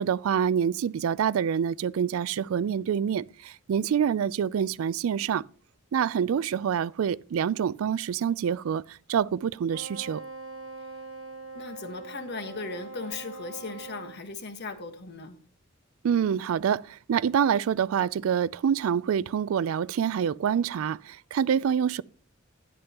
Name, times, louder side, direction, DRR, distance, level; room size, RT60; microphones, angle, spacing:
voice 1, 0.0-5.4 5.9-10.2 16.0-22.0, right 8 dB, 85° right, 0.3 m, -26 dB
Wind instrument woodwind instrument, 9.7-14.2, right 3 dB, 70° right, 1.3 m, -42 dB
voice 2, 11.5-15.4, left 3 dB, 55° left, 1.3 m, -37 dB
12.0 x 10.5 x 2.9 m
head